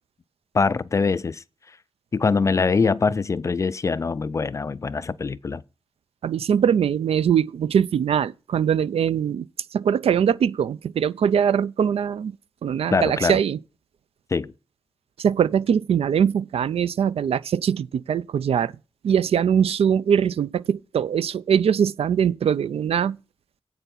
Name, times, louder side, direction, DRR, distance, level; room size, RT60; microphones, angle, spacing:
voice 1, 0.5-1.4 2.1-5.6 12.9-13.4 14.3-14.5, left 4 dB, 30° left, 0.4 m, -23 dB
voice 2, 6.2-9.5 9.7-12.3 12.6-13.6 15.2-18.7 19.0-23.2, right 8 dB, 80° right, 0.4 m, -22 dB
8.0 x 6.8 x 5.6 m
wide cardioid pair, 180°, 10 cm